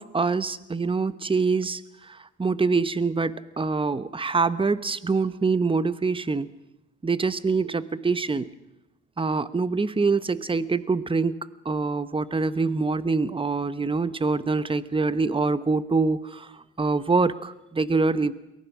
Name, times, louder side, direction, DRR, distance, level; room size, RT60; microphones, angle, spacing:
voice 1, 0.0-1.8 2.1-6.5 7.0-8.5 9.2-16.5 16.8-18.3, right 4 dB, 15° right, 14 dB, 1.0 m, -25 dB
23.0 x 19.0 x 6.2 m, 0.94 s
cardioid pair, 90°, 30 cm